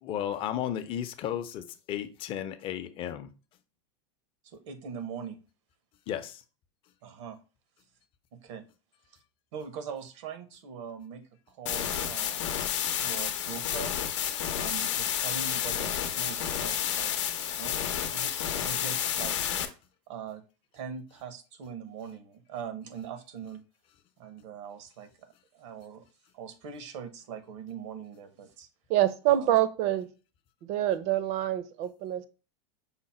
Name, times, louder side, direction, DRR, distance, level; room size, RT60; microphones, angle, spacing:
voice 1, 0.0-3.3 6.1-6.4, left 10 dB, 35° left, 0.5 m, -34 dB
voice 2, 4.4-5.4 7.0-7.4 8.3-8.6 9.5-12.6 12.9-13.9 14.5-17.1 17.5-17.8 18.1-19.4 20.1-20.4 20.7-23.6 24.2-26.1 26.3-28.7 29.3-29.6, right 7 dB, 75° right, 0.9 m, -42 dB
sound 1, 11.7-19.7, left 9 dB, 85° left, 0.7 m, -30 dB
voice 3, 28.9-30.1 30.6-32.3, right 13 dB, 50° right, 0.5 m, -26 dB
5.7 x 2.1 x 4.1 m
supercardioid pair, 135°, 15 cm